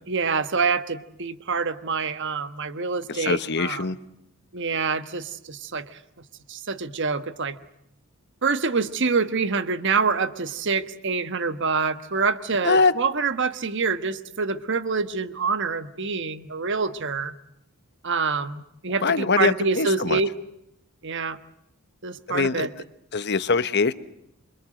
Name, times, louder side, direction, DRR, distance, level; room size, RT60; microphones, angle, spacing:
voice 1, 0.1-3.8 4.5-6.0 6.5-7.6 8.4-17.3 18.0-20.3 21.0-21.4 22.0-22.7, right 4 dB, 55° right, 11 dB, 1.3 m, -26 dB
voice 2, 3.1-4.0 12.6-12.9 19.0-20.2 22.3-22.7 23.1-23.9, left 4 dB, 50° left, 13 dB, 1.1 m, -22 dB
28.0 x 24.5 x 7.7 m, 0.80 s
head